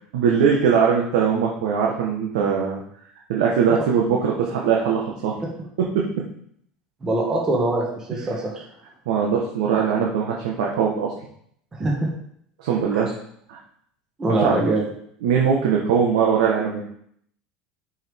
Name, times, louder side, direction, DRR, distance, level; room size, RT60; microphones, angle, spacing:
voice 1, 0.1-2.8 3.3-5.3 9.1-11.1 12.6-13.1 13.5-13.6 14.3-14.6 15.2-16.8, right 6 dB, 80° right, -2 dB, 1.4 m, -21 dB
voice 2, 7.0-8.4 11.8-12.1 12.9-13.0 14.2-14.9, right 2 dB, 20° right, -2 dB, 1.9 m, -23 dB
7.5 x 5.4 x 3.6 m, 0.67 s
supercardioid pair, 115°, 3 cm